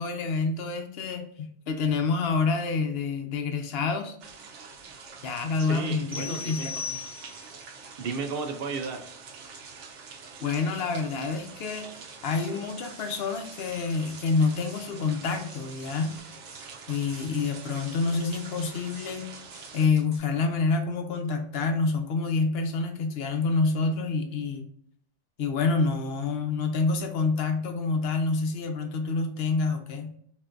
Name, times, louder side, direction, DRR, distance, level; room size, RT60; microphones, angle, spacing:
voice 1, 0.0-4.1 5.2-7.0 10.4-11.9 12.2-16.1 16.9-19.3 19.7-24.7 25.4-30.1, left 4 dB, 60° left, 6 dB, 0.8 m, -27 dB
sound 1, 4.2-19.9, right 5 dB, 80° right, 1.0 m, -46 dB
voice 2, 5.6-6.7 8.0-9.0, right 4 dB, 60° right, 6 dB, 0.7 m, -33 dB
sound 2, 6.1-7.6, left 5 dB, 10° left, 1.0 m, -37 dB
sound 3, 11.6-20.2, right 2 dB, 35° right, 1.1 m, -50 dB
5.4 x 2.6 x 2.5 m, 0.65 s
omnidirectional pair, 1.2 m